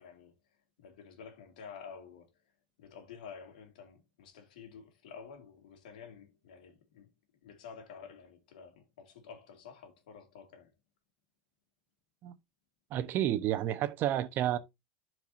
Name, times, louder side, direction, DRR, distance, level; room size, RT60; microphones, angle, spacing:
voice 1, 0.0-2.4 2.8-7.1 7.4-10.7 14.4-14.6, left 6 dB, 85° left, 2.2 m, -51 dB
voice 2, 12.9-14.6, right 12 dB, 50° right, 0.9 m, -30 dB
11.5 x 4.6 x 2.7 m
supercardioid pair, 105°, 4 cm